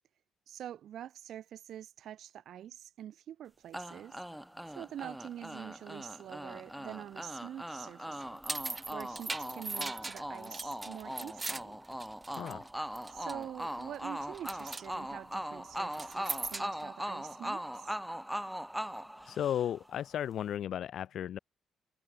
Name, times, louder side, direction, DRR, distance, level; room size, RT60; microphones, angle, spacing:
voice 1, 0.5-4.2 4.8-11.8 13.1-18.0, right 11 dB, 70° right, 2.1 m, -46 dB
sound 1, 3.7-19.9, equal, 5° right, 1.4 m, -40 dB
sound 2, 8.2-12.7 13.0-13.4 13.8-14.1 14.3-14.9 15.9-16.8, right 3 dB, 20° right, 1.5 m, -39 dB
voice 2, 19.3-21.4, left 10 dB, 70° left, 0.6 m, -34 dB
cardioid pair, 90°, 0 cm